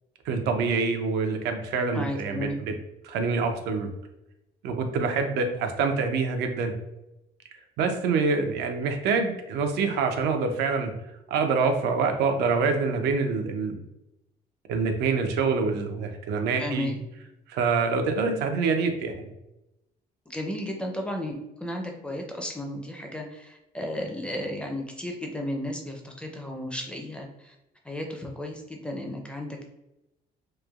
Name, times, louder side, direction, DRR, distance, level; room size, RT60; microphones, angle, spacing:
voice 1, 0.3-2.5 3.0-3.9 4.6-6.7 7.8-10.9 11.3-13.8 14.7-17.0 17.5-19.1, right 4 dB, 80° right, 6 dB, 0.5 m, -26 dB
voice 2, 1.9-2.6 16.6-17.0 20.3-21.3 21.6-27.5 27.9-29.6, left 1 dB, 5° left, 1 dB, 0.4 m, -34 dB
3.1 x 2.1 x 2.3 m, 0.92 s
cardioid pair, 110°, 17 cm